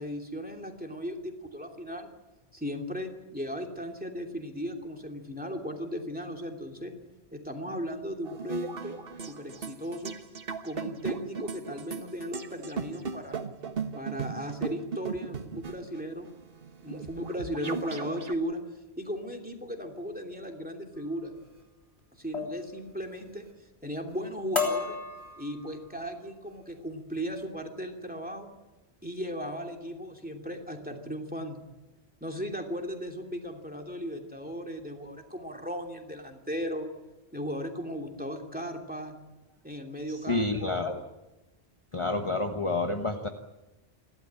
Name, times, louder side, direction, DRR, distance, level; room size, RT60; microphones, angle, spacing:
voice 1, 0.0-2.1 2.5-6.9 7.3-9.0 9.3-10.2 10.6-13.4 13.9-16.3 16.8-18.6 19.0-21.3 22.2-23.5 23.8-25.0 25.4-28.5 29.0-31.6 32.2-36.9 37.3-39.2 39.6-40.8, equal, 10° right, 3 dB, 2.9 m, -36 dB
sound 1, 8.2-18.3, right 5 dB, 60° right, 1.5 m, -37 dB
sound 2, 21.4-21.6 22.3-22.7 23.0-23.5 23.9-24.2 24.5-25.9 26.5-26.7 27.1-27.4, left 5 dB, 80° left, 3.9 m, -34 dB
voice 2, 40.3-41.0 41.9-43.3, left 2 dB, 30° left, 4 dB, 1.2 m, -29 dB
29.0 x 12.5 x 8.9 m, 1.1 s
omnidirectional pair, 1.1 m